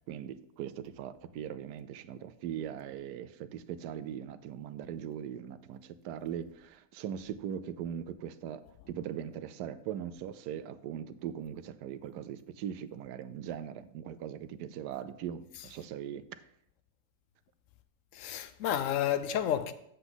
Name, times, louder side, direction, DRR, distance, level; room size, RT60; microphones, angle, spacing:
voice 1, 0.0-16.4, right 9 dB, 85° right, 1.2 m, -40 dB
voice 2, 18.1-19.7, left 10 dB, 65° left, 0.8 m, -31 dB
8.2 x 7.9 x 3.9 m
omnidirectional pair, 1.7 m